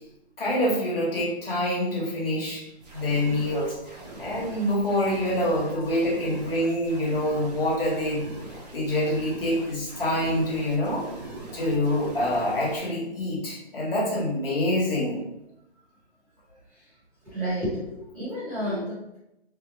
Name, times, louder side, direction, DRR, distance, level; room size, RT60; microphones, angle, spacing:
voice 1, 0.4-2.6 2.9-8.3 8.7-11.0 11.5-15.2, left 1 dB, 55° left, -5 dB, 1.4 m, -26 dB
sound 1, 2.8-12.8, right 2 dB, 40° right, 0.6 m, -42 dB
voice 2, 17.2-19.2, equal, 5° right, -16 dB, 0.8 m, -31 dB
3.3 x 2.0 x 2.6 m, 0.86 s
figure-of-eight pair, 155°, 33 cm